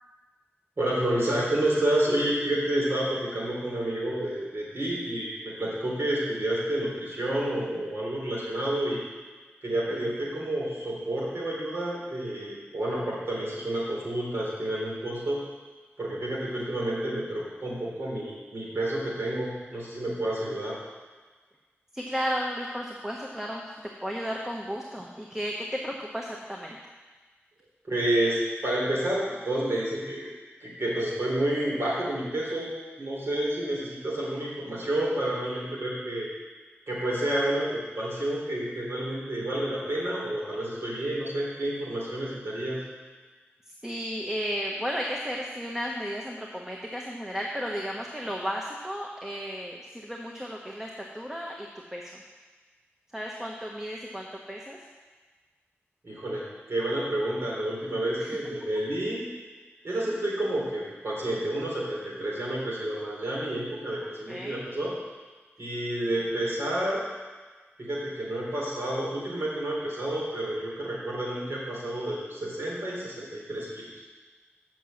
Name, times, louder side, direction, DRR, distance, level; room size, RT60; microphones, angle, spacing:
voice 1, 0.8-9.0 9.6-15.4 16.0-20.8 27.9-30.3 30.6-32.7 33.0-36.3 36.9-42.8 56.0-59.2 59.8-64.9 65.6-67.0 67.8-73.9, right 1 dB, 65° right, -5 dB, 3.6 m, -29 dB
voice 2, 21.9-26.8 43.7-52.2 53.1-54.8 58.2-58.4 64.3-64.6, equal, 10° right, -1 dB, 1.0 m, -34 dB
7.7 x 6.1 x 7.7 m, 1.3 s
wide cardioid pair, 85°, 5 cm